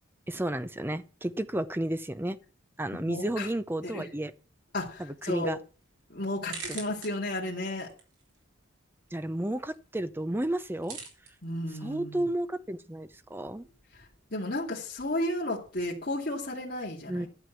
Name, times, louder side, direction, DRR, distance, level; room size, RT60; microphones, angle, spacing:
voice 1, 0.3-2.4 2.8-4.3 5.0-5.6 9.1-11.0 11.7-13.6 17.1-17.3, right 1 dB, 10° right, 0.6 m, -32 dB
voice 2, 3.0-3.5 3.8-4.1 4.7-5.6 6.1-7.9 11.4-12.3 14.0-17.3, left 1 dB, 45° left, 2.5 m, -33 dB
sound 1, 4.7-15.9, right 5 dB, 80° right, 4.3 m, -50 dB
11.5 x 7.3 x 6.0 m
head